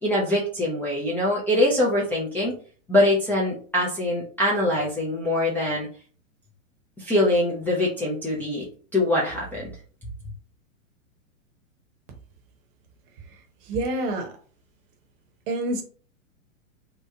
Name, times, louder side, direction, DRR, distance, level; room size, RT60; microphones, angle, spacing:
voice 1, 0.0-2.5 2.9-5.9 7.0-8.7 8.9-9.7, left 1 dB, 5° left, -6 dB, 0.4 m, -23 dB
voice 2, 13.7-14.3 15.5-15.8, right 1 dB, 40° right, 5 dB, 0.9 m, -27 dB
3.0 x 2.1 x 3.5 m, 0.42 s
hypercardioid pair, 120°, 40 cm